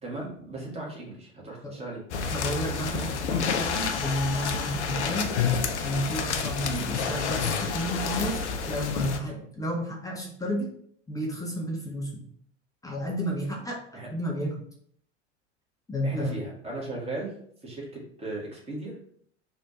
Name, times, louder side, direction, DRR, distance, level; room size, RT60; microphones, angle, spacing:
voice 1, 0.0-2.0 6.6-6.9 13.9-14.1 16.0-17.3 17.6-18.9, right 2 dB, 15° right, -4 dB, 1.5 m, -36 dB
sound 1, 2.1-9.2, left 6 dB, 70° left, 0.6 m, -29 dB
voice 2, 2.3-5.3 5.8-10.7 11.1-12.2 12.8-14.6 15.9-16.4, equal, 10° left, -3 dB, 0.6 m, -31 dB
3.4 x 2.5 x 4.0 m, 0.65 s
figure-of-eight pair, 75°, 36 cm